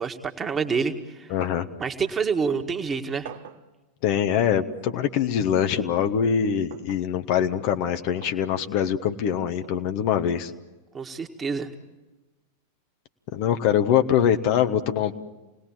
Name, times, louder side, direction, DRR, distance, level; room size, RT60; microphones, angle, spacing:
voice 1, 0.0-1.3 1.8-3.3 10.9-11.7, right 5 dB, 20° right, 5 dB, 1.9 m, -27 dB
voice 2, 1.3-1.7 4.0-10.5 13.3-15.1, left 9 dB, 45° left, 8 dB, 1.1 m, -23 dB
sound 1, 1.4-1.7 2.1-2.2 3.2-3.7 4.8-5.0 6.7-7.1 8.2-8.4 9.6-9.8, right 10 dB, 55° right, 1.2 m, -44 dB
28.5 x 19.5 x 7.5 m, 1.1 s
figure-of-eight pair, 90°, 0 cm